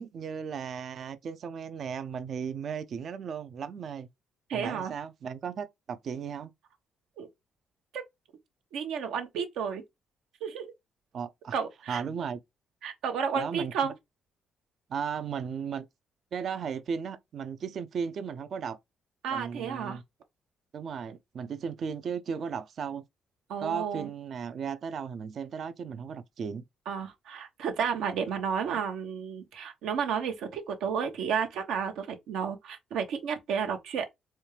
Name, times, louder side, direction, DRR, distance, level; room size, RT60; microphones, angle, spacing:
voice 1, 0.0-4.1 4.5-6.5 11.1-11.5 11.9-12.4 13.3-13.9 14.9-15.9 16.3-18.8 19.3-20.0 20.7-23.0 23.6-26.6, right 6 dB, 60° right, 0.5 m, -36 dB
voice 2, 4.5-4.9 7.2-7.3 7.9-8.0 8.7-9.8 10.4-10.7 11.5-12.0 12.8-13.9 19.2-20.0 23.5-24.1 26.9-34.1, right 7 dB, 85° right, 0.9 m, -32 dB
4.3 x 2.3 x 3.2 m
cardioid pair, 80°, 0 cm